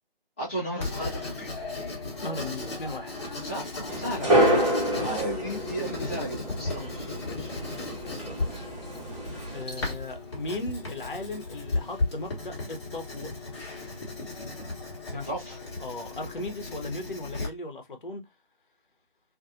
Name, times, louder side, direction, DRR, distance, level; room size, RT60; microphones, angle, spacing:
voice 1, 0.4-1.5 3.4-6.9 15.3-15.6, right 1 dB, 10° left, 0.7 m, -35 dB
Writing, 0.8-17.5, left 3 dB, 30° left, 1.1 m, -36 dB
voice 2, 2.2-3.1 4.9-5.1 6.8-7.6 8.0-8.5 9.5-13.3 15.1-15.3 15.8-18.2, left 2 dB, 60° left, 0.9 m, -37 dB
sound 1, 3.9-9.6, right 1 dB, 30° right, 1.2 m, -28 dB
2.6 x 2.5 x 2.5 m
figure-of-eight pair, 155°, 29 cm